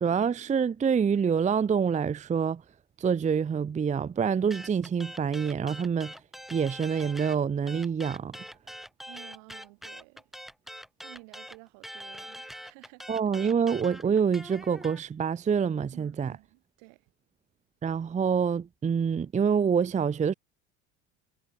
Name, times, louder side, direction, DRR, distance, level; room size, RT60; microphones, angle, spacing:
voice 1, 0.0-2.6 3.0-6.1 6.5-8.4 13.1-16.3 17.8-20.3, right 6 dB, 20° right, 0.6 m, -26 dB
sound 1, 4.5-7.4 7.7-15.0, equal, ahead, 4.3 m, -43 dB
voice 2, 9.1-10.3 11.0-13.1 15.9-17.1, right 40 dB or more, 70° right, 3.4 m, -52 dB
hypercardioid pair, 75°, 37 cm